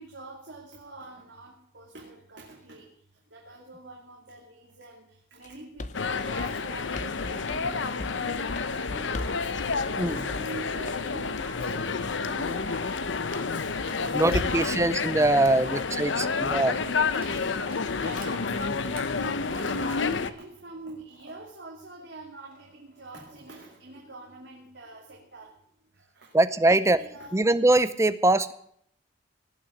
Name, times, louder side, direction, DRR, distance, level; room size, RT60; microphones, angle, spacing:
voice 1, 0.0-9.5 9.9-18.8 19.2-25.5 25.9-26.3 26.8-27.4, right 2 dB, 65° right, -2 dB, 2.5 m, -45 dB
sound 1, 5.4-5.5 5.8-6.0 6.4-7.2 7.5-7.6 8.0-8.2 8.6-8.7 9.1-9.4 9.7-10.0 10.3-10.6 10.9-11.1, left 2 dB, 40° left, 0.8 m, -39 dB
sound 2, 5.9-20.3, left 4 dB, 70° left, 0.8 m, -29 dB
sound 3, 13.6-14.5 14.9-21.0 21.4-21.5 22.5-23.9, right 3 dB, 50° right, 3.3 m, -51 dB
voice 2, 14.1-16.1 16.4-16.7 26.3-27.0 27.3-28.5, right 2 dB, 15° right, 14 dB, 0.6 m, -22 dB
17.5 x 6.3 x 9.6 m, 0.68 s
head